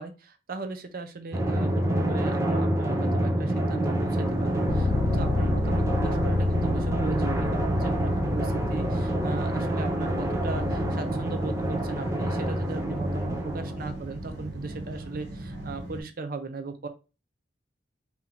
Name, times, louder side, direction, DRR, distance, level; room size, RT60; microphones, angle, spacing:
voice 1, 0.0-16.9, right 3 dB, 55° right, 8 dB, 0.6 m, -38 dB
Drum, 1.3-14.4, right 1 dB, 15° right, 0.6 m, -27 dB
sound 1, 3.9-16.0, right 1 dB, 75° right, 1.1 m, -38 dB
Bass guitar, 4.7-10.9, left 4 dB, 80° left, 0.4 m, -32 dB
4.3 x 2.9 x 3.9 m, 0.31 s
head